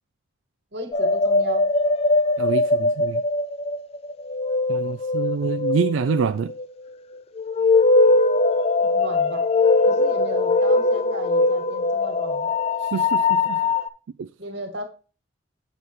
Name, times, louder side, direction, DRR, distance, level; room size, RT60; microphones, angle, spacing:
voice 1, 0.7-1.6 8.8-9.4 9.9-12.5 14.4-14.8, right 1 dB, 55° right, 2.0 m, -35 dB
sound 1, 0.9-6.7 7.4-13.9, left 3 dB, 30° left, 0.3 m, -21 dB
voice 2, 2.4-3.2 4.7-6.5 12.8-13.6 14.2-14.3, right 5 dB, 80° right, 0.3 m, -26 dB
7.7 x 7.1 x 3.1 m
head